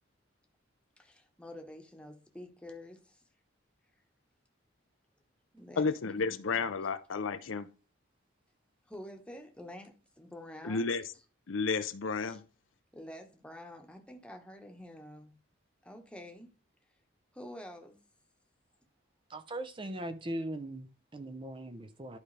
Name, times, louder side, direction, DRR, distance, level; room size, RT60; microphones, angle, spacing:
voice 1, 1.0-3.2 5.5-6.6 8.9-11.0 12.3-12.4 12.9-15.4 15.8-16.5 17.3-18.0, left 1 dB, 5° left, 1.2 m, -48 dB
voice 2, 5.8-7.7 10.6-11.1 11.5-12.4, left 4 dB, 75° left, 0.6 m, -32 dB
voice 3, 19.3-22.2, right 1 dB, 25° right, 0.6 m, -40 dB
11.5 x 4.8 x 3.3 m
head